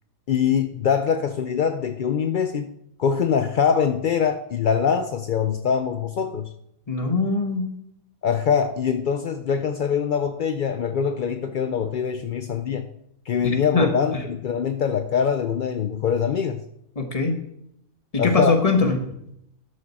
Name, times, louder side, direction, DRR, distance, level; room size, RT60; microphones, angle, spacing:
voice 1, 0.3-2.7 3.0-6.5 8.2-12.9 13.3-16.6 18.2-18.6, left 7 dB, 75° left, 8 dB, 0.4 m, -23 dB
voice 2, 6.9-7.7 13.4-14.2 17.0-17.4 18.1-19.1, left 3 dB, 25° left, 5 dB, 1.2 m, -22 dB
12.5 x 6.5 x 4.2 m, 0.78 s
omnidirectional pair, 1.5 m